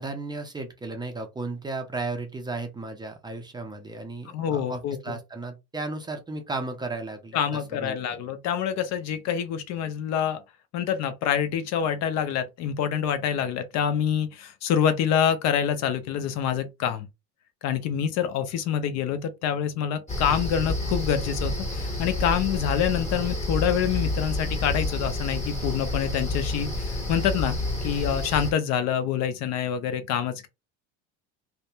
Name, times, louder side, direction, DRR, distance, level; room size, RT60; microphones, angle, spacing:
voice 1, 0.0-8.2, right 3 dB, 15° right, 0.4 m, -35 dB
voice 2, 4.3-5.2 7.3-10.4 10.7-17.1 17.6-30.5, left 8 dB, 60° left, 0.5 m, -26 dB
sound 1, 20.1-28.5, left 1 dB, 20° left, 1.4 m, -29 dB
2.7 x 2.1 x 2.2 m
cardioid pair, 120°, 31 cm